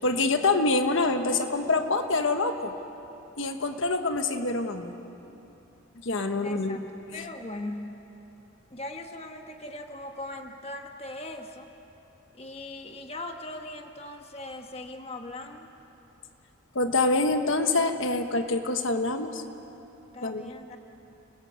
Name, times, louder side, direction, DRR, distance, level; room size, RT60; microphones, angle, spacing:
voice 1, 0.0-2.7 3.4-4.9 6.0-6.8 16.7-19.4 20.2-20.5, left 3 dB, 65° left, 7 dB, 1.2 m, -26 dB
voice 2, 6.4-7.9 8.7-11.7 12.3-15.7 20.1-20.8, left 1 dB, 30° left, 4 dB, 1.3 m, -39 dB
29.0 x 20.0 x 8.2 m, 3.0 s
head